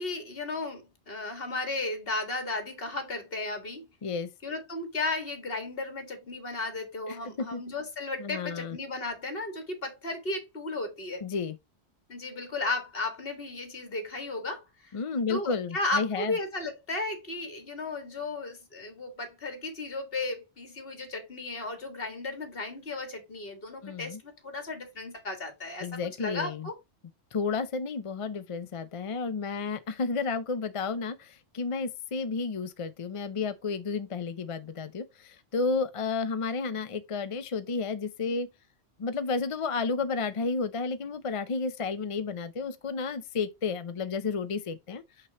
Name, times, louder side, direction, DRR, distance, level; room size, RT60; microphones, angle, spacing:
voice 1, 0.0-3.9 4.4-11.2 12.1-14.9 15.3-26.8, left 2 dB, 55° left, 2.1 m, -35 dB
voice 2, 7.1-7.6 8.2-8.8 11.2-11.6 14.9-16.3 23.8-24.2 25.8-26.7 27.3-38.5 39.0-45.0, left 4 dB, 40° left, 0.5 m, -32 dB
6.2 x 5.8 x 2.9 m
omnidirectional pair, 1.1 m